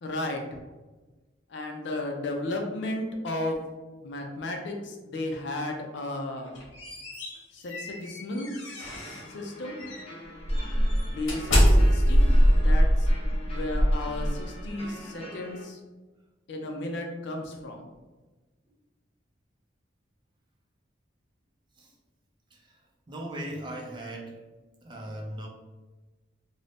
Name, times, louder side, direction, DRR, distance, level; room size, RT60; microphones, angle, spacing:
voice 1, 0.0-0.4 1.5-3.6 4.0-6.6 7.5-8.5 9.3-9.8 11.0-13.1 13.5-15.8 16.5-17.9, left 1 dB, 65° left, 2 dB, 0.5 m, -34 dB
sound 1, 6.4-9.3 9.8-10.0 10.5-14.7, equal, 85° left, 0.8 m, -23 dB
sound 2, 8.8-15.6, left 1 dB, 30° left, 0.7 m, -44 dB
voice 2, 22.5-22.8 23.1-24.4 24.8-25.5, right 1 dB, 25° right, -1 dB, 0.4 m, -38 dB
2.5 x 2.0 x 3.3 m, 1.2 s
head